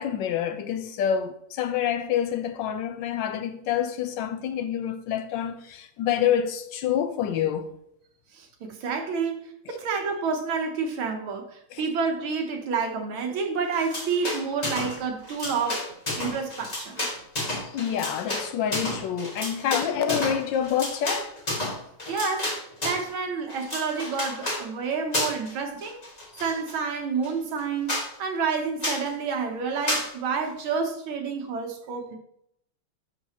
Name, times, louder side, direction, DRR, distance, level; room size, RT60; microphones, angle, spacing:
voice 1, 0.0-7.7 11.7-11.8 17.6-21.4 26.3-26.4, left 9 dB, 75° left, 1.2 m, -27 dB
voice 2, 8.3-15.9 16.2-17.1 22.1-22.6 22.8-26.0 26.4-32.2, right 5 dB, 85° right, 1.9 m, -29 dB
sound 1, 13.7-15.0 15.2-23.1 23.5-24.6 25.1-25.5 25.8-26.8 27.2-27.3 27.6-27.7 27.9-28.1 28.8-29.1 29.9-30.1, left 1 dB, 20° left, 1.5 m, -31 dB
11.5 x 4.0 x 2.9 m
omnidirectional pair, 2.2 m